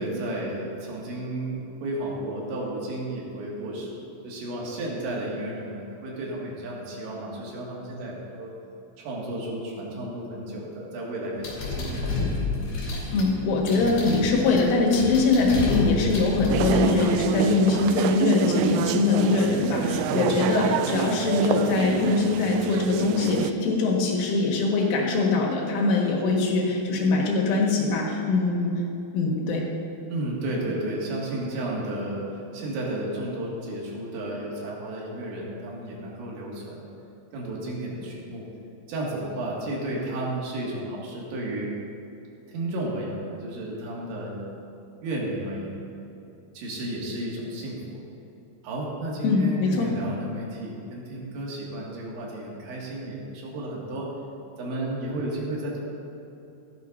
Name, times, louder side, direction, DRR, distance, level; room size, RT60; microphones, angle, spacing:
voice 1, 0.0-8.5 9.0-12.2 20.1-20.9 30.1-32.3 32.5-36.9 37.3-38.4 38.9-41.7 42.5-44.4 45.0-45.8 46.5-48.0 48.6-54.1 54.6-55.8, right 1 dB, 70° right, -4 dB, 4.3 m, -33 dB
sound 1, 11.4-16.8, left 3 dB, 55° left, 3.9 m, -30 dB
voice 2, 13.1-28.7 29.1-29.6 49.2-49.9, left 3 dB, 85° left, -1 dB, 4.2 m, -22 dB
sound 2, 16.5-23.5, right 9 dB, 90° right, 3.1 m, -27 dB
16.0 x 13.0 x 2.7 m, 2.9 s
omnidirectional pair, 5.6 m